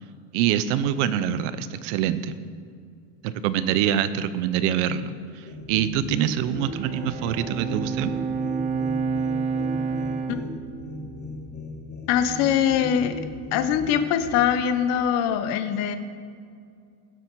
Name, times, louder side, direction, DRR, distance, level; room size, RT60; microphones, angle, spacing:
voice 1, 0.3-2.4 3.2-8.1, right 10 dB, 65° right, 13 dB, 0.8 m, -25 dB
sound 1, 5.5-14.6, left 2 dB, 25° left, 1.2 m, -38 dB
Bowed string instrument, 6.5-12.0, right 5 dB, 20° right, 0.5 m, -30 dB
voice 2, 12.1-13.2 13.5-16.0, left 9 dB, 45° left, 9 dB, 0.8 m, -22 dB
17.0 x 7.8 x 4.6 m, 2.3 s
cardioid pair, 175°, 38 cm